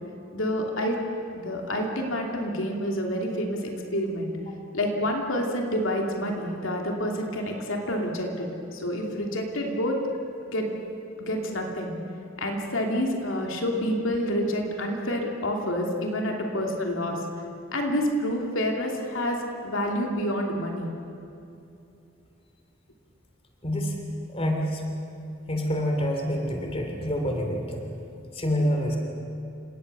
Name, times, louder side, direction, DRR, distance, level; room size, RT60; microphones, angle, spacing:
voice 1, 0.3-1.0 1.4-4.3 4.7-10.0 10.5-10.7 11.2-11.9 12.4-17.2 17.7-19.4 19.6-20.9, equal, 75° left, 1 dB, 2.8 m, -28 dB
voice 2, 23.6-24.0 24.3-24.8 25.5-27.8 28.3-29.0, equal, 30° left, 2 dB, 2.9 m, -27 dB
29.5 x 18.0 x 6.9 m, 2.6 s
head